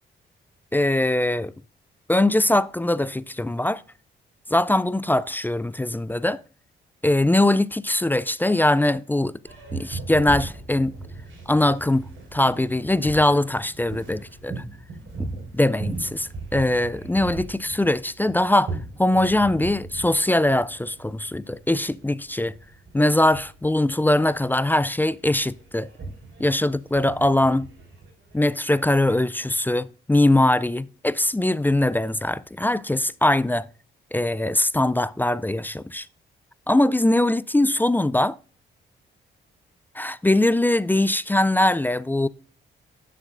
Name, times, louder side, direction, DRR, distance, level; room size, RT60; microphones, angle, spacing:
voice 1, 0.7-1.5 2.1-3.8 4.5-6.4 7.0-9.3 9.7-11.0 11.5-14.6 15.2-15.3 15.5-22.5 22.9-25.9 26.4-27.7 28.3-33.7 34.1-36.1 36.7-38.4 40.0-42.3, left 1 dB, 10° left, 0.3 m, -21 dB
Boat Water vehicle, 9.4-28.5, right 3 dB, 65° right, 4.1 m, -38 dB
11.0 x 6.7 x 2.5 m
cardioid pair, 70°, 21 cm